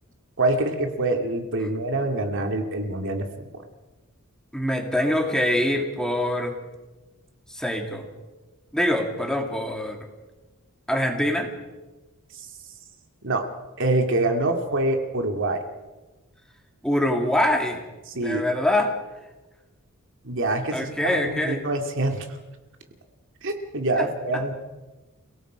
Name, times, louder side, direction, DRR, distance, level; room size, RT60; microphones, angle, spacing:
voice 1, 0.4-3.6 13.2-13.5 13.8-15.6 18.2-18.4 20.2-22.3 23.4-24.5, right 2 dB, 60° right, 5 dB, 2.3 m, -25 dB
voice 2, 4.5-6.5 7.5-8.0 8.7-10.0 10.9-11.5 16.8-17.8 18.1-18.9 20.7-21.6 24.0-24.1, left 1 dB, 5° left, 3 dB, 2.4 m, -24 dB
29.5 x 17.5 x 5.0 m, 1.1 s
head